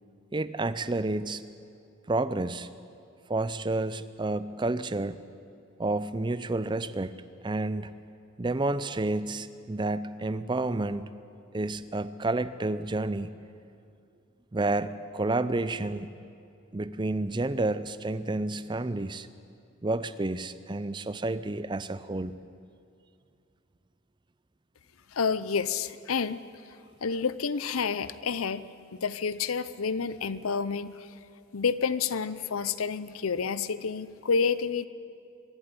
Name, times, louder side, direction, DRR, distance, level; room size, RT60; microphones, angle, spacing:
voice 1, 0.3-1.4 2.1-2.7 3.3-5.2 5.8-7.1 7.4-8.0 8.4-11.1 11.5-13.3 14.5-16.1 16.7-19.3 19.8-22.4, right 2 dB, 20° right, 14 dB, 0.5 m, -30 dB
voice 2, 25.1-26.4 27.0-28.6 29.0-31.0 31.5-34.9, left 5 dB, 85° left, 15 dB, 0.7 m, -29 dB
23.5 x 11.5 x 9.8 m, 2.5 s
head